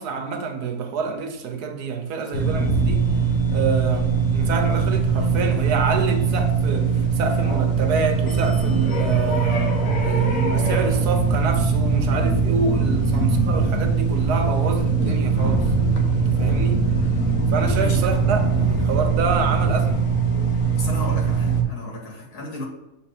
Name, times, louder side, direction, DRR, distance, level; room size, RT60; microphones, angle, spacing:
voice 1, 0.0-3.0 3.5-9.7 10.0-15.7 16.1-16.8 17.5-20.0, right 5 dB, 85° right, 1.4 m, -27 dB
sound 1, 2.3-21.6, right 4 dB, 60° left, 1.4 m, -21 dB
voice 2, 17.8-18.3 20.7-22.6, left 1 dB, 85° left, 2.1 m, -34 dB
7.1 x 3.7 x 4.9 m
omnidirectional pair, 1.6 m